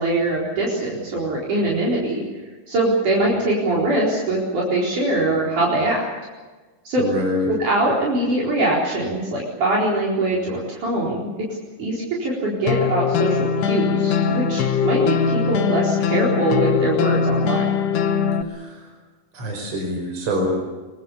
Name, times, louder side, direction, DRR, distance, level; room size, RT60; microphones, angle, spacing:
voice 1, 0.0-2.2 2.7-6.1 6.9-7.0 7.6-11.3 11.8-17.7, right 2 dB, 65° right, -5 dB, 5.8 m, -22 dB
voice 2, 7.0-7.5 18.5-18.9 19.3-20.5, equal, 50° right, 1 dB, 6.3 m, -26 dB
sound 1, 12.7-18.4, left 7 dB, 70° left, 2.8 m, -21 dB
24.0 x 24.0 x 7.1 m, 1.3 s
omnidirectional pair, 3.8 m